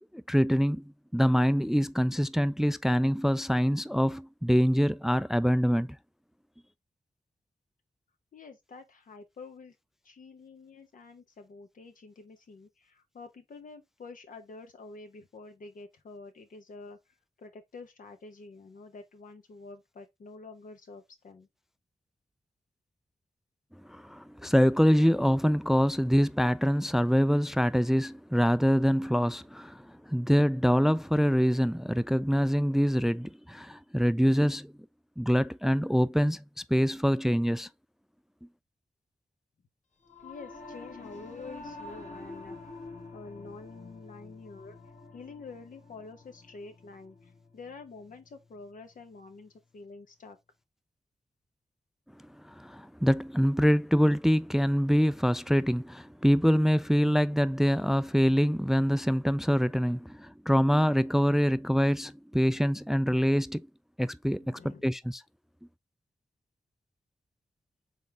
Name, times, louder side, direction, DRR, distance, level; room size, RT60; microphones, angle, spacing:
voice 1, 0.1-0.8 1.1-6.0 23.9-34.7 35.2-36.4 36.7-37.7 52.5-63.6 64.0-65.2, equal, 5° right, 0.3 m, -25 dB
voice 2, 8.3-9.8 10.0-17.0 17.4-21.5 40.2-42.6 43.1-44.8 45.1-50.4 64.4-65.0, left 3 dB, 85° left, 1.0 m, -48 dB
Singing / Musical instrument, 40.0-49.6, left 3 dB, 65° left, 1.6 m, -48 dB
4.2 x 3.8 x 3.3 m
cardioid pair, 45°, 13 cm